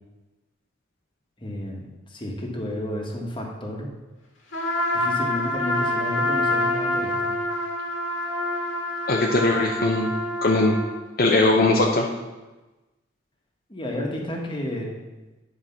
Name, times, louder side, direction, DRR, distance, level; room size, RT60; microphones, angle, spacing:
voice 1, 1.4-3.9 4.9-7.3 13.7-15.0, left 1 dB, 25° left, -1 dB, 1.6 m, -31 dB
Trumpet, 4.5-11.0, left 1 dB, 90° left, 2.0 m, -26 dB
voice 2, 9.1-10.1 10.4-10.8 11.2-12.1, left 2 dB, 55° left, 0 dB, 0.8 m, -20 dB
9.8 x 4.8 x 5.9 m, 1.1 s
head